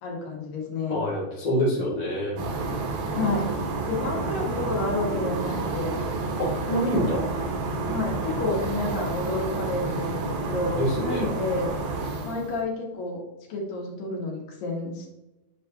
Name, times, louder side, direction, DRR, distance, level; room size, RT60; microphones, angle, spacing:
voice 1, 0.0-1.0 3.1-3.5 3.9-6.0 7.9-11.7 12.2-13.2 13.5-15.1, left 2 dB, 70° left, -1 dB, 3.0 m, -30 dB
voice 2, 0.9-2.4 6.4-7.3 10.7-11.3, equal, 30° left, -9 dB, 2.4 m, -26 dB
sound 1, 2.4-12.6, right 3 dB, 75° right, 3.2 m, -30 dB
8.1 x 4.6 x 3.0 m, 0.99 s
omnidirectional pair, 4.3 m